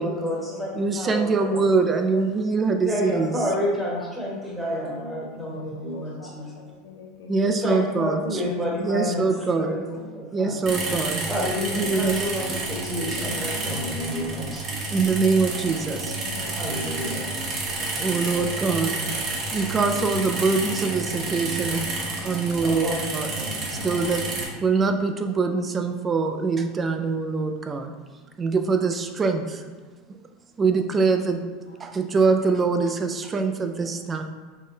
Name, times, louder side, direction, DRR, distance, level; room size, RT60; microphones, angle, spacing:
voice 1, 0.0-1.6 2.8-6.6 7.6-10.6 11.3-14.9 16.6-17.3 22.6-23.9, equal, ahead, -5 dB, 1.0 m, -30 dB
voice 2, 0.8-3.4 7.3-8.4 8.8-9.7 10.3-11.3 11.7-12.2 14.9-16.1 18.0-18.9 19.5-23.3 23.7-24.2 24.6-27.9 28.4-29.7 30.6-31.4 31.8-34.2, right 4 dB, 25° right, 6 dB, 0.3 m, -24 dB
voice 3, 3.6-4.2 5.5-7.6 10.0-10.1 11.4-12.0 13.2-14.4 15.9-16.6 18.2-18.3 23.4-24.1 31.3-31.9 33.8-33.9, left 5 dB, 85° left, 1 dB, 0.5 m, -44 dB
sound 1, 10.6-24.5, right 2 dB, 40° right, 0.8 m, -30 dB
3.7 x 2.1 x 3.7 m, 1.4 s
supercardioid pair, 120°, 0 cm